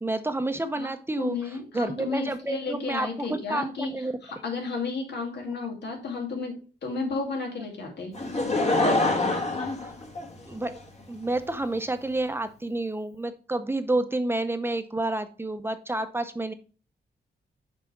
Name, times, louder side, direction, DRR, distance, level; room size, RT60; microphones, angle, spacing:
voice 1, 0.0-1.4 1.7-4.1 9.8-9.9 10.5-10.8 11.1-16.5, right 2 dB, 15° right, 9 dB, 0.8 m, -29 dB
voice 2, 1.2-6.5 6.8-8.1, left 4 dB, 80° left, 2 dB, 2.3 m, -32 dB
Laughter / Crowd, 8.1-10.8 11.5-11.6, left 2 dB, 40° left, 1.5 m, -25 dB
5.8 x 4.9 x 4.7 m, 0.37 s
cardioid pair, 90°, 17 cm